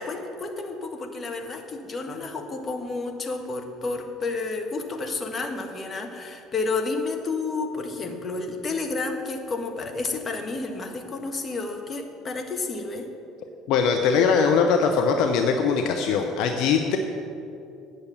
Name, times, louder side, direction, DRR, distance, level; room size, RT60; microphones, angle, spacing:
voice 1, 0.0-13.1, left 3 dB, 30° left, 3 dB, 1.5 m, -31 dB
voice 2, 13.7-17.0, left 5 dB, 60° left, 4 dB, 0.7 m, -21 dB
9.1 x 6.6 x 8.3 m, 2.7 s
hypercardioid pair, 60°, 0 cm